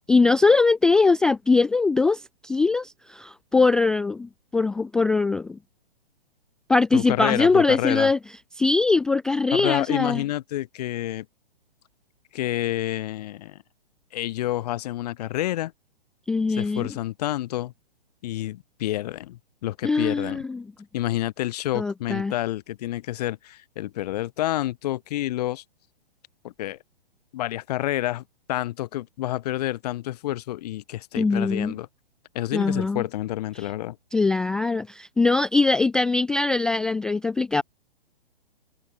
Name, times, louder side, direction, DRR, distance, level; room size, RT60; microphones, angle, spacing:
voice 1, 0.1-5.6 6.7-8.2 8.6-10.2 16.3-16.9 19.8-20.6 21.7-22.3 31.2-31.7 32.5-33.0 34.1-37.6, left 3 dB, ahead, 0.4 m, -21 dB
voice 2, 6.9-8.1 9.5-11.3 12.3-13.6 14.1-15.7 16.6-17.7 18.2-20.4 20.9-25.6 26.4-26.8 27.3-28.2 28.5-31.9 32.3-34.0, left 15 dB, 40° left, 3.5 m, -29 dB
figure-of-eight pair, 120°, 30 cm